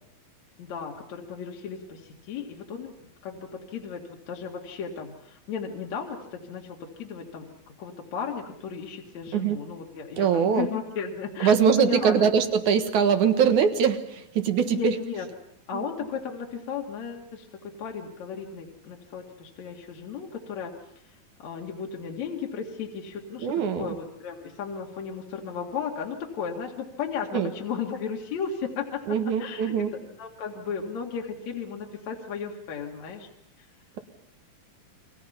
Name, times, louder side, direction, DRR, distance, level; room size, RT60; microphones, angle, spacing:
voice 1, 0.6-2.9 3.2-12.3 14.6-15.3 15.7-20.7 21.4-33.3 33.6-33.7, left 6 dB, 55° left, 1 dB, 3.0 m, -35 dB
voice 2, 10.2-10.7 11.4-15.0 15.7-15.8 23.4-23.9 27.3-27.5 29.1-29.9, right 7 dB, 65° right, 8 dB, 2.7 m, -22 dB
29.5 x 23.0 x 5.6 m, 0.72 s
omnidirectional pair, 4.1 m